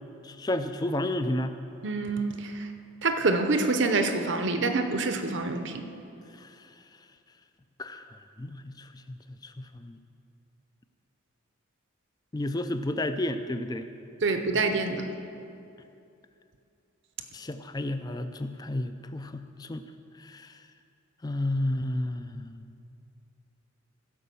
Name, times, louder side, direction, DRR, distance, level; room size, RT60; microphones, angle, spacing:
voice 1, 0.2-1.5 6.4-6.7 7.8-8.0 8.4-10.0 12.3-13.9 17.3-19.8 20.2-20.6 21.2-22.7, left 1 dB, 20° left, 9 dB, 0.4 m, -32 dB
voice 2, 1.8-2.7 3.0-5.8 14.2-15.2, right 3 dB, 60° right, 7 dB, 0.7 m, -26 dB
15.0 x 5.5 x 6.9 m, 2.6 s
head